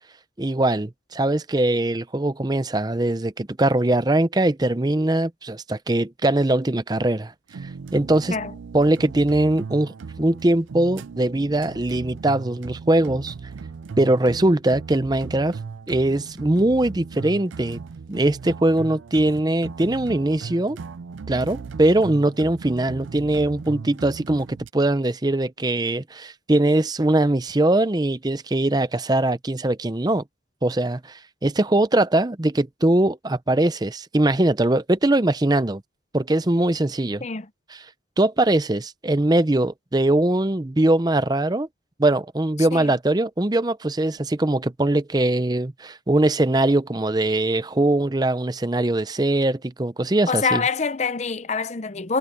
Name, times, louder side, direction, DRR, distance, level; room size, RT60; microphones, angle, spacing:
voice 1, 0.4-7.3 7.6-8.4 8.7-13.3 14.0-15.6 15.9-17.8 18.1-20.8 21.3-30.2 30.6-35.8 36.1-37.2 37.7-37.9 38.2-41.7 42.0-50.6, right 1 dB, 20° right, 0.6 m, -21 dB
sound 1, 7.5-24.7, right 5 dB, 85° right, 0.4 m, -37 dB
voice 2, 50.3-52.2, left 5 dB, 35° left, 0.6 m, -25 dB
head